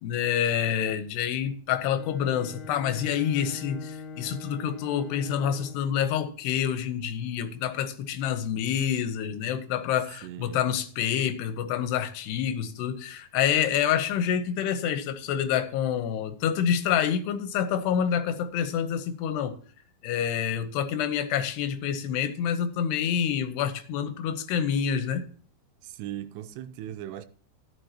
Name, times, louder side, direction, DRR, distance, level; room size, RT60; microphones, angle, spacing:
voice 1, 0.0-19.6 20.0-25.2, left 8 dB, 90° left, 3.1 m, -27 dB
Bowed string instrument, 1.8-6.0, left 5 dB, 55° left, 3.2 m, -42 dB
voice 2, 10.2-10.7 25.8-27.3, right 12 dB, 90° right, 2.9 m, -38 dB
13.0 x 11.0 x 3.0 m
omnidirectional pair, 4.7 m